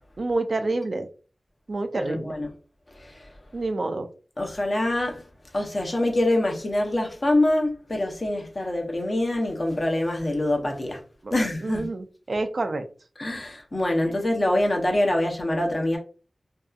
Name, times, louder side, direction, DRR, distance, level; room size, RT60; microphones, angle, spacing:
voice 1, 0.2-1.1 1.7-2.3 3.5-4.1 11.2-11.4 11.6-12.8, right 2 dB, 60° right, 0.3 m, -28 dB
voice 2, 1.9-2.5 3.0-3.3 4.4-5.2 5.5-11.0 11.3-11.9 13.2-16.0, left 1 dB, 45° left, 0.7 m, -25 dB
2.7 x 2.3 x 2.3 m
wide cardioid pair, 80°, 0 cm